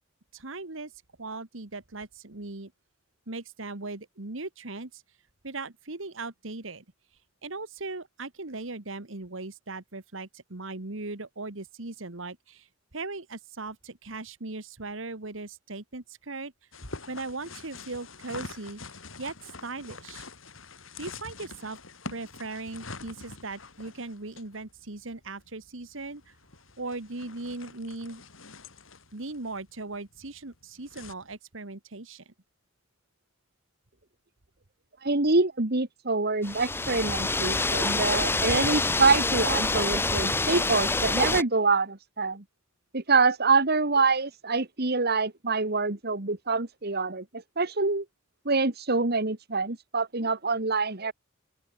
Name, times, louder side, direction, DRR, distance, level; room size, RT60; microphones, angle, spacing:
voice 1, 0.3-0.9 1.2-2.7 3.3-5.0 5.4-6.8 7.4-12.7 12.9-16.5 17.1-20.3 21.0-21.8 22.1-26.3 26.8-28.2 29.1-32.3, right 3 dB, 75° right, 1.9 m, -38 dB
sound 1, 16.7-31.1, left 3 dB, 85° left, 5.9 m, -46 dB
voice 2, 35.0-42.4 42.9-48.1 48.5-51.1, right 4 dB, 55° right, 2.0 m, -25 dB
sound 2, 36.4-41.4, left 3 dB, 10° left, 0.6 m, -26 dB
open air
head